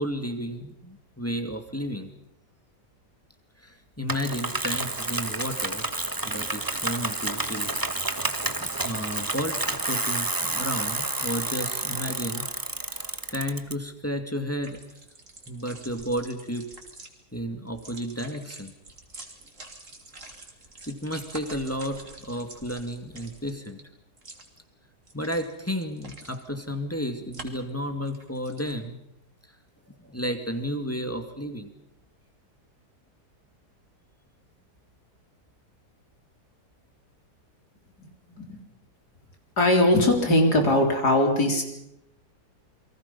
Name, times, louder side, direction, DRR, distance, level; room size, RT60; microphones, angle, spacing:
voice 1, 0.0-2.1 3.6-5.9 6.2-7.7 8.6-12.5 13.3-14.8 15.5-16.7 17.3-18.7 20.9-23.8 25.1-29.0 29.9-31.7, equal, 10° left, 6 dB, 2.3 m, -32 dB
Bicycle, 4.1-13.7, right 2 dB, 15° right, 1.0 m, -30 dB
sound 1, 14.5-17.1 17.7-23.8 24.2-24.6 25.1-26.5 27.3-27.7 28.1-28.7, right 2 dB, 45° right, 3.3 m, -46 dB
voice 2, 39.6-41.6, left 1 dB, 65° left, 3 dB, 4.4 m, -20 dB
29.0 x 23.0 x 5.7 m, 0.81 s
omnidirectional pair, 1.8 m